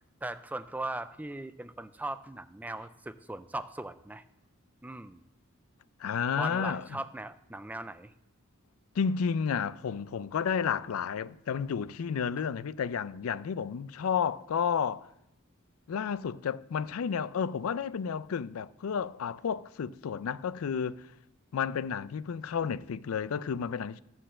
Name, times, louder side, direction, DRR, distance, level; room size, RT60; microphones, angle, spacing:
voice 1, 0.2-4.2 4.8-5.2 6.4-8.1, right 2 dB, 10° right, 0.3 m, -39 dB
voice 2, 6.0-7.0 9.0-15.1 15.9-21.1 21.5-24.0, left 7 dB, 90° left, 0.4 m, -31 dB
13.0 x 4.5 x 7.4 m
head